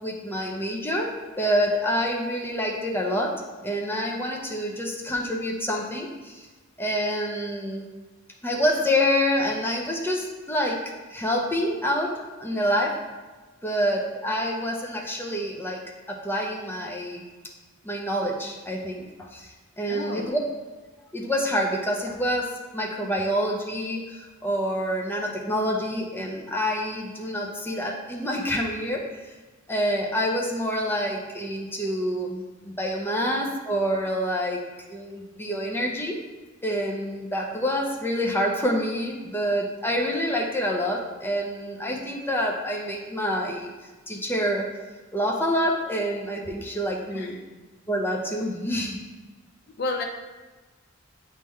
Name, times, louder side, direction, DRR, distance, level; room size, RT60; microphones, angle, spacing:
voice 1, 0.0-6.5 6.8-7.8 8.4-10.8 11.1-13.0 13.6-15.8 16.1-17.2 17.8-20.4 21.1-29.1 29.7-34.6 34.9-36.2 36.6-43.7 44.1-44.7 45.1-47.4 47.9-49.0, equal, 10° left, -1 dB, 0.7 m, -27 dB
voice 2, 19.9-20.3 47.1-47.4 49.8-50.0, left 2 dB, 50° left, 3 dB, 0.5 m, -31 dB
8.1 x 3.7 x 3.2 m, 1.3 s
head